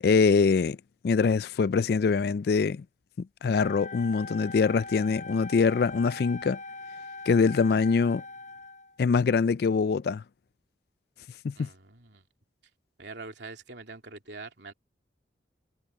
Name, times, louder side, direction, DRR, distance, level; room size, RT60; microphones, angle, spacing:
voice 1, 0.0-0.8 1.0-2.8 3.2-6.6 7.3-8.2 9.0-10.2 11.4-11.7, left 5 dB, 60° left, 0.3 m, -24 dB
Wind instrument woodwind instrument, 3.5-9.0, left 3 dB, 45° left, 4.7 m, -41 dB
voice 2, 11.6-12.2 13.0-14.7, right 3 dB, 75° right, 2.9 m, -44 dB
head